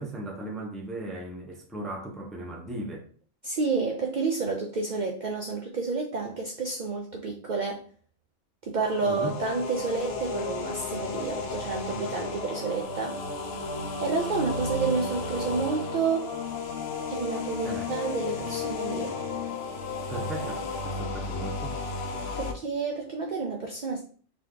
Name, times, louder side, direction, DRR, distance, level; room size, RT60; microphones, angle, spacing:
voice 1, 0.0-3.1 9.0-9.3 17.6-17.9 20.1-21.8, right 2 dB, ahead, 0.5 m, -37 dB
voice 2, 3.4-7.8 8.6-13.2 13.8-16.3 17.1-19.2 22.4-24.0, right 4 dB, 60° right, 0.4 m, -30 dB
sound 1, 8.8-22.5, left 3 dB, 60° left, 0.8 m, -33 dB
3.4 x 2.9 x 3.8 m
omnidirectional pair, 1.4 m